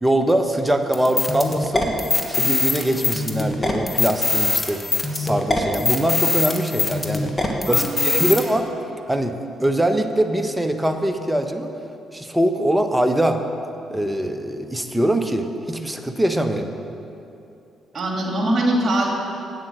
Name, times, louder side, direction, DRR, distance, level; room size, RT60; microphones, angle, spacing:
voice 1, 0.0-1.9 2.3-4.8 5.1-7.3 7.7-8.7 9.1-11.7 12.1-13.4 13.9-16.7, right 1 dB, 10° right, 6 dB, 1.0 m, -22 dB
sound 1, 0.9-8.4, left 3 dB, 25° left, 1.4 m, -22 dB
voice 2, 7.7-8.1 17.9-19.1, right 1 dB, 45° right, -1 dB, 2.5 m, -22 dB
8.8 x 7.5 x 6.4 m, 2.7 s
hypercardioid pair, 45°, 0 cm